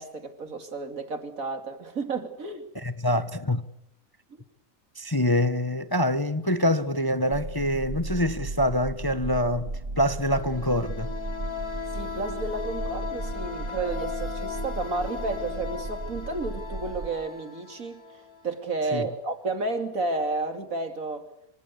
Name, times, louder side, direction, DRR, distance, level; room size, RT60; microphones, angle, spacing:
voice 1, 0.0-2.7 11.9-21.3, right 3 dB, 70° right, 3.2 m, -32 dB
voice 2, 2.7-3.7 5.0-11.1 18.9-19.1, left 1 dB, 15° left, 1.0 m, -25 dB
sound 1, 7.3-17.1, right 2 dB, 45° right, 2.0 m, -35 dB
sound 2, 10.1-18.7, left 6 dB, 85° left, 4.6 m, -38 dB
26.0 x 26.0 x 8.4 m
omnidirectional pair, 1.5 m